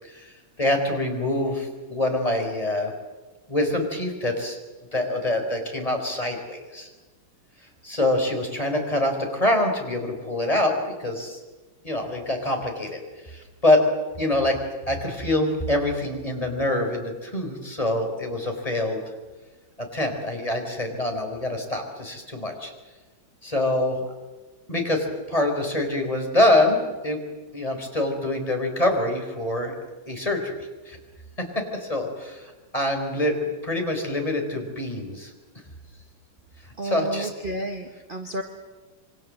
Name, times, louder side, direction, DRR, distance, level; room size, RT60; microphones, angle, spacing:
voice 1, 0.0-2.9 3.5-4.6 4.9-6.9 7.8-11.4 11.8-13.8 14.2-14.6 14.9-19.0 19.8-22.7 23.4-24.0 24.7-27.2 27.5-29.7 30.1-31.0 31.4-35.3 36.8-37.3, left 1 dB, 15° left, 3 dB, 4.5 m, -25 dB
voice 2, 36.8-38.4, right 2 dB, 30° right, 5 dB, 1.5 m, -31 dB
27.0 x 24.5 x 7.7 m, 1.2 s
omnidirectional pair, 2.1 m